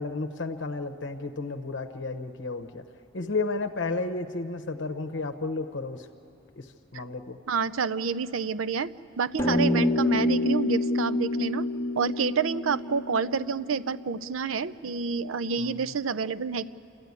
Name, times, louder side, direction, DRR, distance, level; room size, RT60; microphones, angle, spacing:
voice 1, 0.0-2.8 3.1-6.1 6.6-6.7 6.9-7.4 15.6-15.8, left 3 dB, 60° left, 6 dB, 0.8 m, -32 dB
voice 2, 7.5-11.7 12.0-16.6, right 5 dB, 90° right, 16 dB, 0.6 m, -28 dB
sound 1, 9.4-14.0, left 1 dB, 15° left, 1.0 m, -27 dB
29.5 x 13.5 x 9.6 m, 2.6 s
head